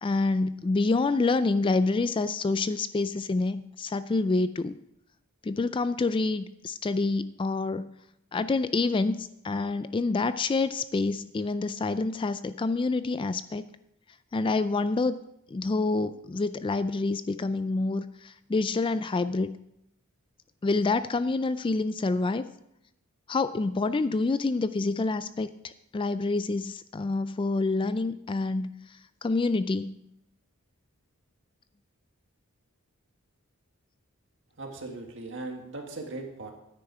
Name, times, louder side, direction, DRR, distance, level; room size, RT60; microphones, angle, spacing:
voice 1, 0.0-4.8 5.4-7.9 8.3-13.6 14.3-15.2 15.5-19.5 20.6-22.5 23.3-28.7 29.2-30.0, left 3 dB, 25° left, 13 dB, 0.3 m, -27 dB
voice 2, 34.6-36.5, right 2 dB, 60° right, 3 dB, 1.8 m, -38 dB
9.7 x 9.7 x 4.8 m, 0.80 s
head